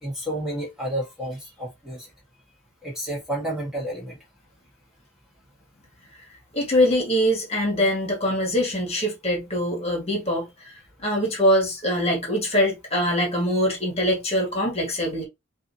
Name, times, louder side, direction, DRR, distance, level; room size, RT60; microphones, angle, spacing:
voice 1, 0.0-2.1 2.8-4.2, right 1 dB, 5° right, 1.5 m, -30 dB
voice 2, 6.5-15.3, equal, 30° left, 1.7 m, -23 dB
6.3 x 2.8 x 2.8 m
head